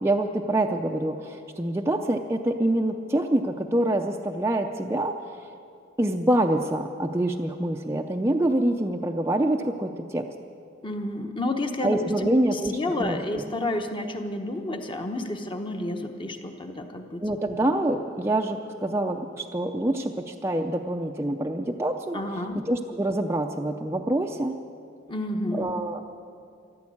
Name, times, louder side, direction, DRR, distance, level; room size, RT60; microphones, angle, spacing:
voice 1, 0.0-5.2 6.0-10.3 11.8-13.4 17.2-22.2 22.7-24.5 25.5-26.0, right 1 dB, 15° right, 2 dB, 0.5 m, -26 dB
voice 2, 10.8-17.2 22.1-22.7 25.1-25.8, left 1 dB, 25° left, 5 dB, 1.0 m, -30 dB
14.0 x 11.5 x 8.5 m, 2.4 s
head